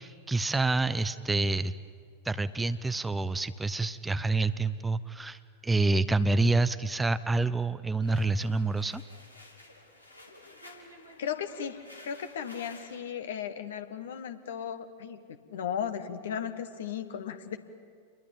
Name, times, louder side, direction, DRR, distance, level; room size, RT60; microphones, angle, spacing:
voice 1, 0.0-1.7 2.2-9.0, right 3 dB, 10° right, 14 dB, 0.7 m, -27 dB
sound 1, 8.0-13.0, left 2 dB, 85° left, 3.2 m, -52 dB
voice 2, 11.2-17.6, left 8 dB, 60° left, 9 dB, 1.7 m, -36 dB
28.5 x 22.0 x 8.9 m, 2.1 s
figure-of-eight pair, 90°, 0 cm